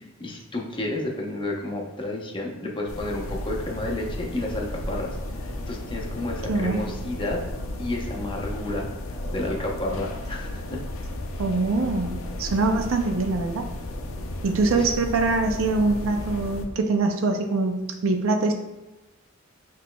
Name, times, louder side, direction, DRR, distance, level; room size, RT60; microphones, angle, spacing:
voice 1, 0.2-5.2 5.7-7.4 7.8-10.8 14.7-14.9, left 1 dB, 25° left, -1 dB, 0.7 m, -31 dB
sound 1, 2.9-16.7, left 1 dB, 80° left, 0.5 m, -34 dB
voice 2, 6.5-6.8 11.4-13.7 14.4-18.5, right 3 dB, 80° right, 4 dB, 0.4 m, -24 dB
5.9 x 3.1 x 2.2 m, 1.1 s
head